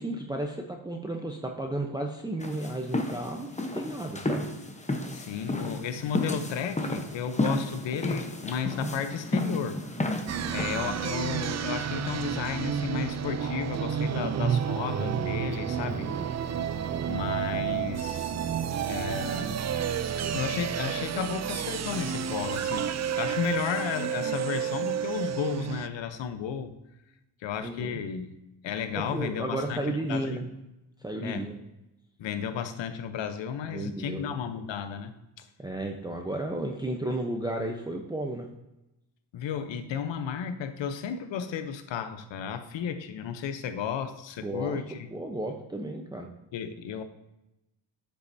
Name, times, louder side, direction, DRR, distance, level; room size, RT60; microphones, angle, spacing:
voice 1, 0.0-4.5 15.9-16.3 27.6-28.0 28.9-30.4 31.0-31.6 33.7-34.4 35.6-38.5 44.4-44.8 45.1-46.3, right 1 dB, 10° right, 2 dB, 0.8 m, -33 dB
sound 1, 2.4-10.8, left 2 dB, 15° left, 1.0 m, -32 dB
voice 2, 5.1-9.8 10.5-16.1 17.1-18.3 18.9-19.7 20.3-26.7 27.4-28.3 28.6-30.4 31.2-31.5 32.2-35.5 39.3-45.1 46.5-47.0, left 7 dB, 75° left, 10 dB, 0.9 m, -33 dB
sound 2, 10.3-25.9, right 8 dB, 40° right, 0.5 m, -30 dB
9.6 x 7.0 x 2.7 m, 0.93 s
cardioid pair, 80°, 45 cm